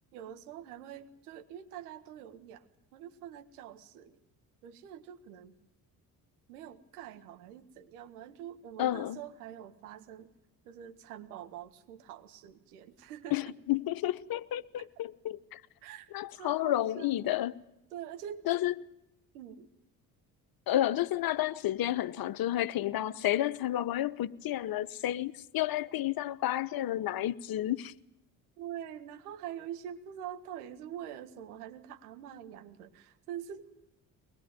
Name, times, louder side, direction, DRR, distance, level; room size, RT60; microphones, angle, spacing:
voice 1, 0.1-4.2 4.6-5.5 6.5-10.3 10.6-13.5 15.8-16.1 16.4-17.1 17.9-18.7 19.3-19.7 28.6-33.8, right 10 dB, 80° right, 1.6 m, -45 dB
voice 2, 8.8-9.2 13.3-15.6 16.1-17.6 18.5-18.7 20.7-27.9, left 13 dB, 50° left, 1.0 m, -31 dB
23.0 x 21.0 x 9.0 m
hypercardioid pair, 50°, 45 cm